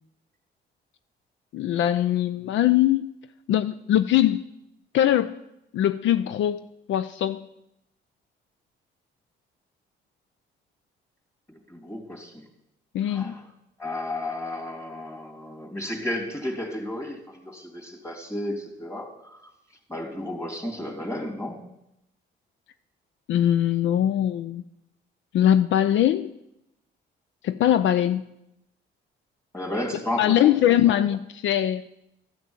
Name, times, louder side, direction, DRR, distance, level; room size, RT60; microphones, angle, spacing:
voice 1, 1.5-3.1 3.5-4.4 4.9-5.4 5.7-6.6 6.9-7.4 12.9-13.3 23.3-24.6 25.3-26.3 27.4-28.2 30.2-31.8, left 11 dB, 75° left, 12 dB, 0.5 m, -21 dB
voice 2, 11.5-12.4 13.0-13.5 13.8-19.5 19.9-21.7 29.5-30.5 30.8-31.0, left 1 dB, 15° left, 0 dB, 3.2 m, -33 dB
14.0 x 6.0 x 7.3 m, 0.84 s
cardioid pair, 90°, 20 cm